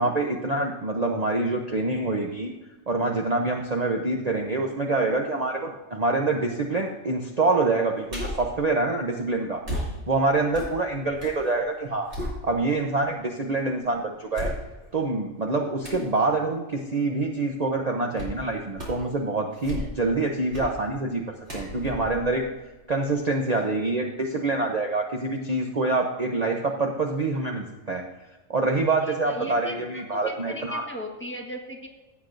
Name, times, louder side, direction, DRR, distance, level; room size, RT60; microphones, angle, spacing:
voice 1, 0.0-2.5 2.9-9.6 10.1-12.1 12.4-14.5 14.9-21.2 21.5-22.4 22.9-28.0 28.5-30.9, right 3 dB, 35° right, 1 dB, 0.8 m, -26 dB
sound 1, 8.1-8.6 9.6-11.4 11.8-12.9 13.4-13.5 14.3-15.0 15.8-16.1 18.2-18.4 18.7-19.1 19.5-20.1 20.5-20.8 21.5-23.1 23.5-23.6, equal, 60° right, 3.1 m, -35 dB
voice 2, 29.0-31.9, equal, 10° left, 1 dB, 1.2 m, -37 dB
15.5 x 8.4 x 2.6 m, 1.1 s
omnidirectional pair, 1.4 m